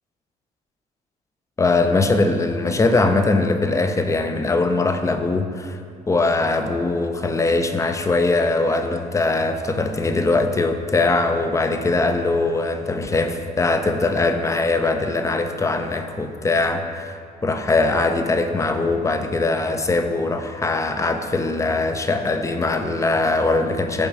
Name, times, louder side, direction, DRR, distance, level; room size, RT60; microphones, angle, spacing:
voice 1, 1.6-5.8 6.1-17.2 17.4-24.1, left 3 dB, 20° left, 7 dB, 0.5 m, -21 dB
7.1 x 5.2 x 4.8 m, 2.4 s
cardioid pair, 120°, 16 cm